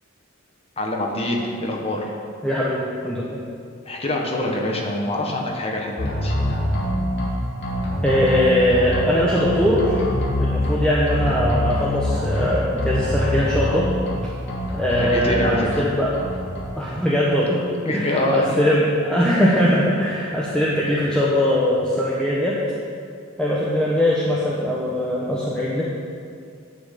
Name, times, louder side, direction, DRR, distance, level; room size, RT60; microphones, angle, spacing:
voice 1, 0.8-2.0 3.9-6.4 15.0-15.8 17.8-18.6, left 1 dB, 30° left, 0 dB, 1.4 m, -25 dB
voice 2, 2.4-3.4 8.0-10.0 10.4-13.9 14.7-16.1 16.7-22.6 23.4-25.8, left 1 dB, 5° left, -6 dB, 1.1 m, -21 dB
sound 1, 6.0-7.3 7.6-9.0 9.4-10.7 11.1-12.5 12.8-14.2 14.5-15.8 16.1-16.6, equal, 55° left, 2.3 m, -24 dB
9.8 x 6.2 x 8.3 m, 2.3 s
head